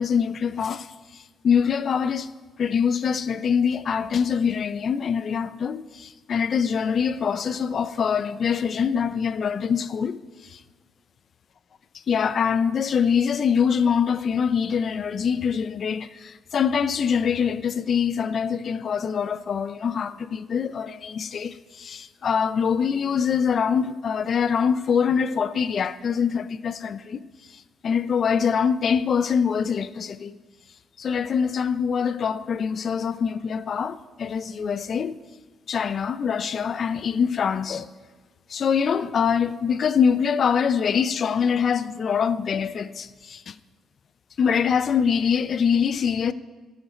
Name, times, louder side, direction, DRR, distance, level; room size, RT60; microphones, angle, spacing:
voice 1, 0.0-2.3 2.6-10.6 12.1-30.4 31.0-35.2 35.7-37.9 38.5-43.5 44.4-46.3, left 7 dB, 55° left, 0.4 m, -24 dB
12.5 x 5.2 x 5.1 m
cardioid pair, 90°, 0 cm